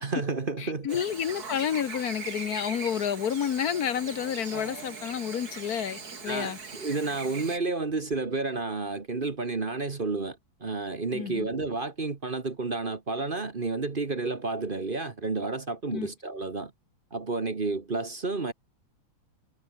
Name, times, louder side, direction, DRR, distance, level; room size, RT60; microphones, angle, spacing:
voice 1, 0.0-1.0 6.2-16.7 17.1-18.5, right 3 dB, 30° right, 1.3 m, -31 dB
voice 2, 0.6-6.6 11.1-11.5 15.9-16.1, left 8 dB, 55° left, 1.3 m, -30 dB
Chirp tweet / Buzz, 0.9-7.6, right 4 dB, 50° right, 3.2 m, -40 dB
omnidirectional pair, 2.2 m